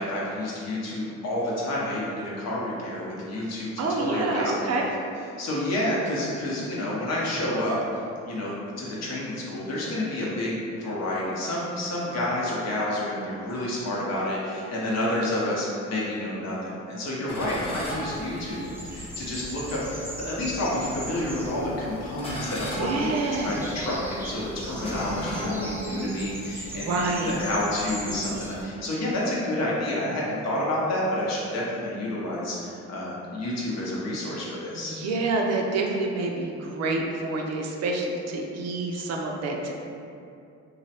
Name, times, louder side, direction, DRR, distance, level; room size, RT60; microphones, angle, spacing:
voice 1, 0.0-4.8 5.4-7.8 8.2-34.9, left 1 dB, 60° left, -6 dB, 0.8 m, -29 dB
voice 2, 3.8-4.9 22.6-23.6 26.7-27.4 34.7-39.7, right 2 dB, 60° right, 0 dB, 0.4 m, -28 dB
sound 1, 17.3-18.9 19.7-19.9 20.7-21.3 22.0-26.1, equal, 20° left, 0.8 m, -35 dB
sound 2, 17.3-28.6, equal, 5° right, 0.5 m, -39 dB
3.1 x 2.1 x 2.8 m, 2.5 s
cardioid pair, 90°, 30 cm